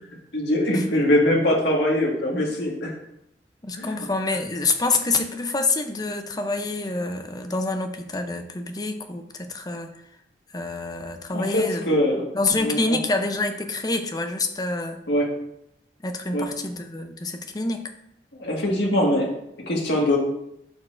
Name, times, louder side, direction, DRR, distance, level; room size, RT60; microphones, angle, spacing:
voice 1, 0.3-2.9 3.8-4.1 11.3-12.2 12.6-13.0 15.1-15.3 16.3-16.5 18.4-19.3 19.7-20.2, left 1 dB, 80° left, -1 dB, 1.7 m, -22 dB
voice 2, 3.6-9.9 10.5-11.9 12.3-15.0 16.0-17.8, left 3 dB, 20° left, 6 dB, 0.6 m, -27 dB
11.5 x 4.3 x 2.5 m, 0.79 s
head